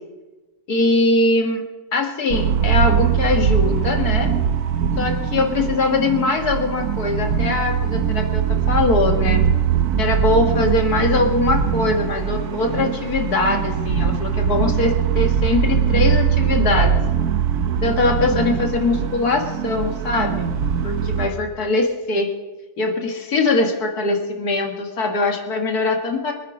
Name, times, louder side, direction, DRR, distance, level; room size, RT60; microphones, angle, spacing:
voice 1, 0.7-1.6 1.9-4.3 5.0-9.4 10.0-16.9 17.8-20.5 20.8-22.3 22.8-26.3, left 3 dB, 55° left, 4 dB, 2.2 m, -21 dB
sound 1, 2.3-21.3, right 8 dB, 65° right, 1.3 m, -21 dB
25.0 x 10.0 x 5.0 m, 1.1 s
omnidirectional pair, 2.0 m